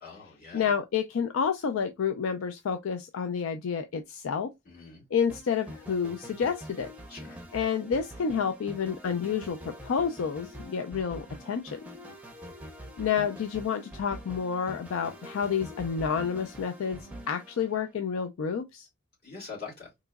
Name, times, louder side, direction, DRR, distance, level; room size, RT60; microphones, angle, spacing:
voice 1, 0.0-0.7 4.7-5.0 7.1-7.4 19.2-19.9, left 5 dB, 45° left, 2.4 m, -43 dB
voice 2, 0.5-4.5 5.1-6.9 7.5-11.8 13.0-17.0 17.3-18.9, left 6 dB, 75° left, 0.4 m, -29 dB
sound 1, 5.3-18.2, equal, 5° right, 0.6 m, -45 dB
3.6 x 2.9 x 2.2 m
head